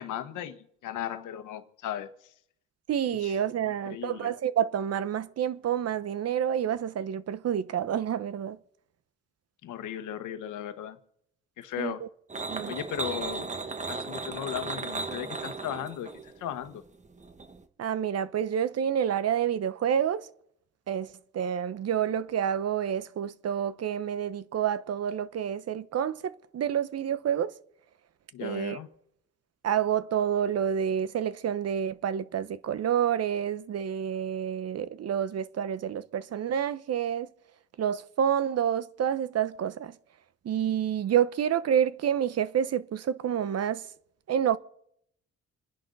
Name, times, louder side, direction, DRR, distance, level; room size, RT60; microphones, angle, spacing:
voice 1, 0.0-2.3 3.2-4.3 9.6-11.0 11.6-12.0 12.7-13.5 13.9-16.8 28.3-28.9, left 10 dB, 85° left, 1.4 m, -37 dB
voice 2, 2.9-8.6 11.8-11.9 12.5-12.7 17.8-20.2 20.9-21.1 21.3-27.5 28.4-28.8 29.6-37.3 37.8-39.9 40.4-43.8 44.3-44.6, right 9 dB, 55° right, 0.9 m, -28 dB
sound 1, 12.3-17.6, right 3 dB, 25° right, 1.4 m, -36 dB
27.5 x 10.5 x 4.1 m
cardioid pair, 90°, 30 cm